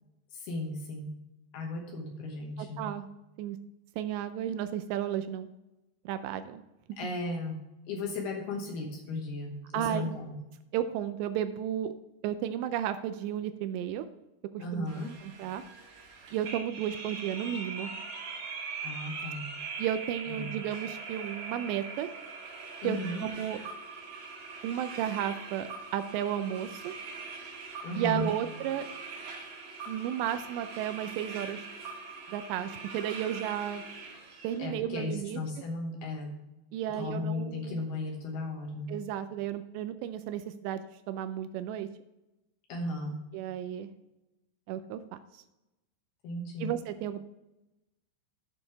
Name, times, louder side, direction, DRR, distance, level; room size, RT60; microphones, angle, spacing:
voice 1, 0.3-1.1 1.5-2.9 7.0-7.6 7.9-10.3 14.6-15.1 18.8-19.5 20.3-20.6 22.8-23.3 27.8-28.3 34.6-36.3 36.9-38.9 42.7-43.2 46.2-46.7, left 2 dB, 70° left, 1 dB, 2.8 m, -35 dB
voice 2, 2.6-3.1 3.4-3.6 4.0-5.5 6.1-6.6 9.7-10.1 10.7-11.9 12.2-14.1 14.5-14.9 15.2-15.6 16.3-17.9 19.8-22.1 22.8-23.6 24.6-26.9 28.0-28.9 29.9-31.7 32.3-33.8 34.4-35.4 36.7-37.9 38.9-40.8 41.1-41.9 43.3-43.9 44.7-45.4 46.6-47.2, right 10 dB, 85° right, 10 dB, 2.6 m, -33 dB
sound 1, 14.9-34.6, right 4 dB, 55° right, 2.7 m, -42 dB
8.9 x 6.0 x 4.7 m, 0.98 s
omnidirectional pair, 5.2 m